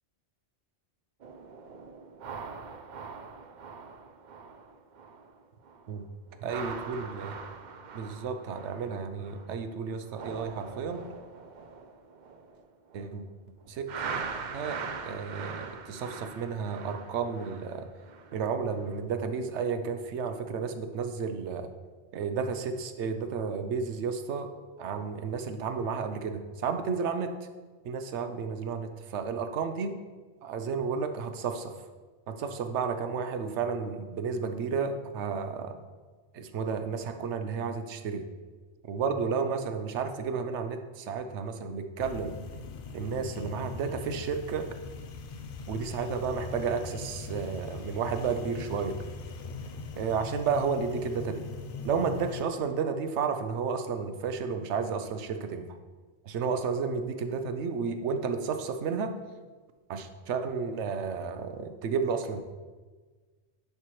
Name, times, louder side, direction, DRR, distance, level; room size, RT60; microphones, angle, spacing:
sound 1, 1.2-5.4 5.6-5.9 6.3-9.6 9.9-13.2 13.9-18.4 18.8-19.0, right 5 dB, 55° right, 0.5 m, -42 dB
voice 1, 6.4-7.3 7.9-11.0 12.9-13.2 13.7-14.0 14.5-14.8 15.0-17.9 18.3-21.7 22.1-24.5 24.8-27.3 27.8-29.9 30.4-31.7 32.3-35.8 36.3-38.2 38.9-42.3 42.9-44.6 45.7-49.0 50.0-51.5 51.8-55.7 56.2-59.1 59.9-62.4, right 5 dB, 80° right, 7 dB, 0.9 m, -32 dB
sound 2, 42.0-52.4, left 4 dB, 60° left, 0.7 m, -41 dB
10.5 x 4.4 x 3.1 m, 1.4 s
omnidirectional pair, 1.2 m